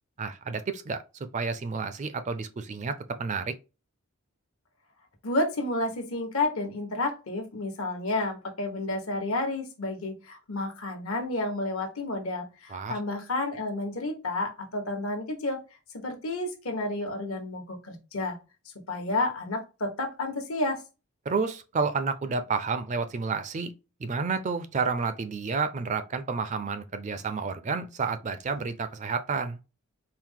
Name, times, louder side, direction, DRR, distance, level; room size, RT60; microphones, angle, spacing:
voice 1, 0.2-1.0 1.3-3.5 12.7-13.0 21.3-23.7 24.0-29.6, right 4 dB, 35° right, 0.4 m, -30 dB
voice 2, 5.2-15.6 15.9-18.4 18.9-20.8, left 2 dB, 70° left, 1.1 m, -31 dB
4.5 x 2.0 x 3.6 m
head